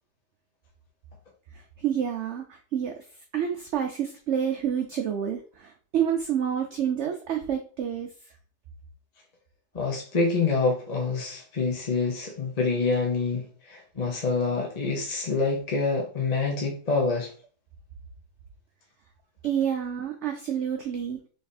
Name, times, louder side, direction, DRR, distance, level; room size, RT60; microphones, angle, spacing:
voice 1, 1.5-3.0 3.3-8.1 19.4-21.2, right 9 dB, 60° right, 0.8 m, -28 dB
voice 2, 9.7-17.3, left 4 dB, 35° left, 0.8 m, -26 dB
3.4 x 3.4 x 4.1 m
omnidirectional pair, 1.7 m